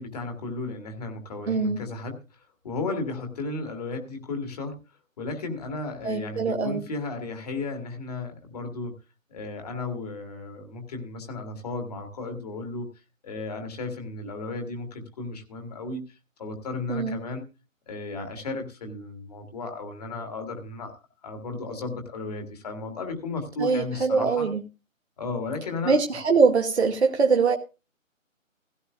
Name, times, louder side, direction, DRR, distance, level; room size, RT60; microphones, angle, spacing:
voice 1, 0.0-4.8 5.2-9.0 9.3-12.9 13.2-17.4 17.9-20.9 21.2-24.5 25.2-26.0, left 3 dB, 30° left, 5 dB, 2.1 m, -34 dB
voice 2, 1.5-1.8 6.0-6.8 16.9-17.2 23.6-24.6 25.8-27.6, right 4 dB, 55° right, 4 dB, 1.3 m, -22 dB
16.0 x 13.5 x 2.4 m, 0.30 s
figure-of-eight pair, 155°, 40 cm